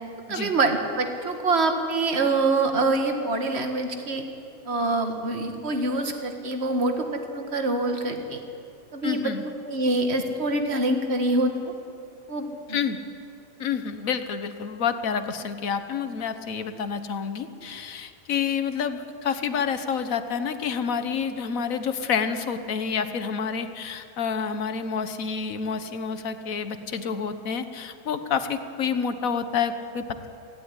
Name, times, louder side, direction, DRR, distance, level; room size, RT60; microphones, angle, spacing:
voice 1, 0.3-4.2 4.7-8.4 8.9-9.3 9.6-11.5 12.3-12.8, right 2 dB, 40° right, 5 dB, 2.0 m, -25 dB
voice 2, 9.0-9.4 12.7-13.0 13.6-30.3, left 6 dB, 60° left, 10 dB, 1.5 m, -28 dB
18.0 x 15.5 x 9.7 m, 2.7 s
omnidirectional pair, 1.8 m